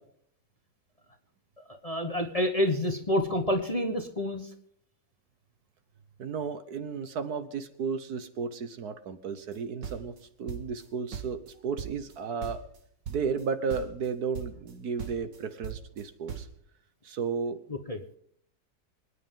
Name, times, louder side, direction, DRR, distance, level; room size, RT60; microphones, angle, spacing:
voice 1, 1.8-4.4 17.9-18.0, left 1 dB, 25° left, 4 dB, 1.1 m, -28 dB
voice 2, 6.2-10.1 10.4-12.6 13.1-16.5 17.0-17.6, right 5 dB, 65° right, 10 dB, 1.5 m, -33 dB
sound 1, 9.5-10.9 11.1-12.2 12.4-12.8 13.1-13.5 13.7-14.1 14.3-14.7 15.0-16.6, right 8 dB, 85° right, 2.4 m, -39 dB
26.0 x 9.8 x 3.8 m, 0.68 s
omnidirectional pair, 1.9 m